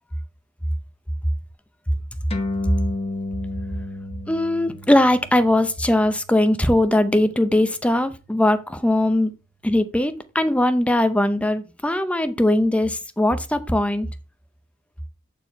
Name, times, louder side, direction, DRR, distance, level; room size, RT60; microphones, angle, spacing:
sound 1, 2.3-9.1, left 2 dB, 30° left, 1.0 m, -34 dB
voice 1, 4.3-9.3 9.6-14.1, left 1 dB, 5° left, 0.6 m, -20 dB
8.6 x 4.5 x 4.6 m
head